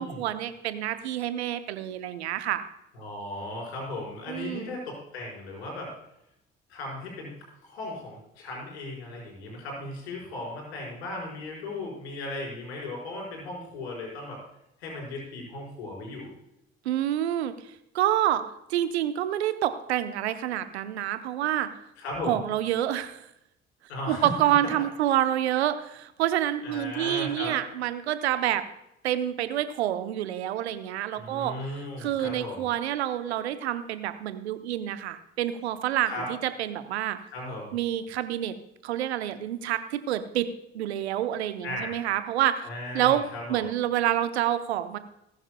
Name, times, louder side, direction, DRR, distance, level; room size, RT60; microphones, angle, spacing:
voice 1, 0.0-2.6 4.3-4.7 16.8-17.5 17.9-18.4 18.7-21.7 22.3-23.2 24.1-28.6 29.0-31.5 32.0-37.2 37.7-38.5 38.8-40.5 40.7-42.6 42.9-43.2 43.5-45.0, right 12 dB, 85° right, 11 dB, 0.8 m, -27 dB
voice 2, 2.9-5.9 6.7-7.3 7.6-14.4 14.8-16.3 22.0-22.4 23.9-24.3 26.6-27.5 31.1-32.6 36.0-36.3 37.3-37.7 41.6-42.1 42.6-43.6, left 2 dB, 85° left, -2 dB, 5.0 m, -36 dB
19.0 x 10.5 x 2.3 m, 0.83 s
hypercardioid pair, 50°, 32 cm